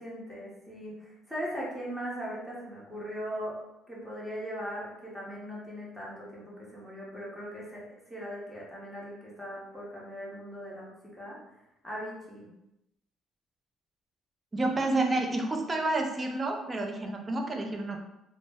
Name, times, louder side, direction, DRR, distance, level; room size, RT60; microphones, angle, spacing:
voice 1, 0.0-3.6 3.9-7.8 8.1-11.4 11.8-12.5, equal, 5° right, -6 dB, 0.9 m, -39 dB
voice 2, 14.5-18.0, right 2 dB, 25° right, 2 dB, 0.5 m, -29 dB
2.0 x 2.0 x 3.4 m, 0.91 s
supercardioid pair, 85°, 0 cm